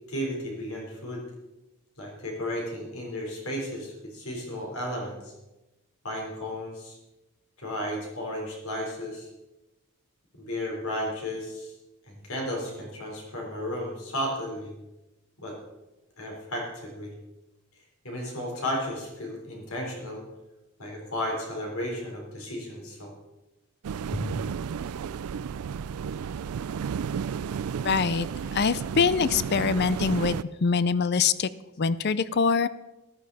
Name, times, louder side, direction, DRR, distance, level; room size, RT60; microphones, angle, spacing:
voice 1, 0.1-1.2 2.0-5.3 6.0-7.0 7.6-9.3 10.4-11.7 12.1-14.7 15.4-15.6 16.2-17.1 18.0-20.2 20.8-23.1 24.1-24.2, equal, 70° left, 0 dB, 4.1 m, -33 dB
sound 1, 23.8-30.4, right 7 dB, 80° right, 0.4 m, -33 dB
voice 2, 27.8-28.3 28.5-31.5 31.8-32.7, left 5 dB, 45° left, 17 dB, 0.5 m, -24 dB
14.0 x 12.5 x 4.2 m, 1.0 s
head